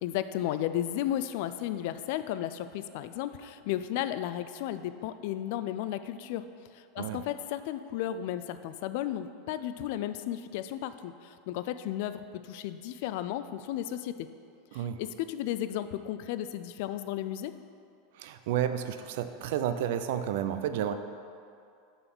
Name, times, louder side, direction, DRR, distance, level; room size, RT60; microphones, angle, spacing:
voice 1, 0.0-6.5 6.7-14.3 14.7-17.5, left 12 dB, 65° left, 11 dB, 0.3 m, -34 dB
voice 2, 18.1-20.9, right 10 dB, 70° right, 9 dB, 0.5 m, -31 dB
7.8 x 4.0 x 6.0 m, 2.4 s
supercardioid pair, 130°, 0 cm